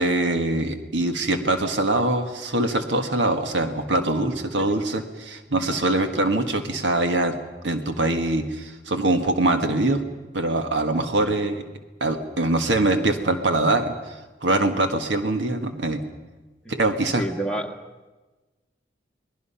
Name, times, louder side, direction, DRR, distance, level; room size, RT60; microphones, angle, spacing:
voice 1, 0.0-7.4 7.6-10.0 10.3-11.6 12.0-13.9 14.4-16.0 16.7-17.2, right 2 dB, 80° right, 6 dB, 1.7 m, -23 dB
voice 2, 10.9-11.3 16.6-16.7 17.1-18.1, right 1 dB, 5° left, 1 dB, 1.5 m, -31 dB
28.0 x 20.5 x 5.7 m, 1.2 s
head